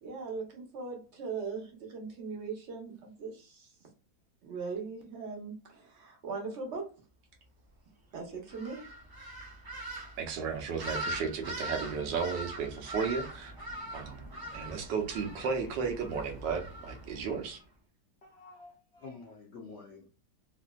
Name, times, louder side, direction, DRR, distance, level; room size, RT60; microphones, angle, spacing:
voice 1, 0.0-3.7 4.4-6.9 8.1-8.8, right 4 dB, 50° right, 0.9 m, -39 dB
sound 1, 8.5-17.6, right 1 dB, 35° right, 0.3 m, -42 dB
voice 2, 10.2-13.5 13.9-17.6, right 5 dB, 85° right, 1.4 m, -34 dB
voice 3, 18.2-20.2, left 4 dB, 70° left, 0.6 m, -49 dB
3.3 x 2.5 x 2.3 m
omnidirectional pair, 1.9 m